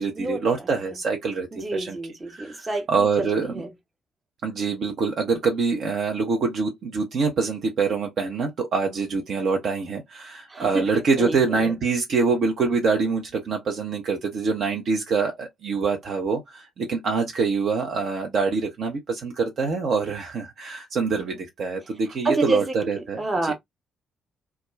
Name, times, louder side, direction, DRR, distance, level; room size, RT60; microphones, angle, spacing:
voice 1, 0.0-2.0 2.3-2.6 2.9-3.6 4.4-23.5, right 4 dB, 50° right, 0.7 m, -25 dB
voice 2, 1.5-3.7 10.5-11.7 22.2-22.7 23.2-23.5, right 2 dB, 25° right, 0.9 m, -28 dB
2.3 x 2.2 x 2.9 m
figure-of-eight pair, 40°, 0 cm